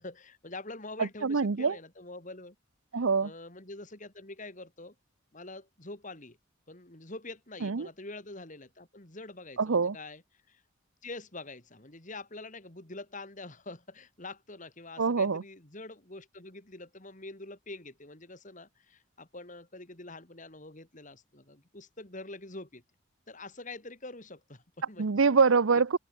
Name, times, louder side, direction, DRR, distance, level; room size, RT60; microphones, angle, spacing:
voice 1, 0.0-2.5 2.9-4.9 5.3-6.4 6.7-10.2 10.5-10.6 11.0-22.8 23.3-25.1, left 2 dB, 40° left, 3.1 m, -45 dB
voice 2, 1.0-1.8 2.9-3.3 7.6-7.9 9.6-10.0 15.0-15.4 25.0-26.0, right 5 dB, 75° right, 0.7 m, -25 dB
open air
head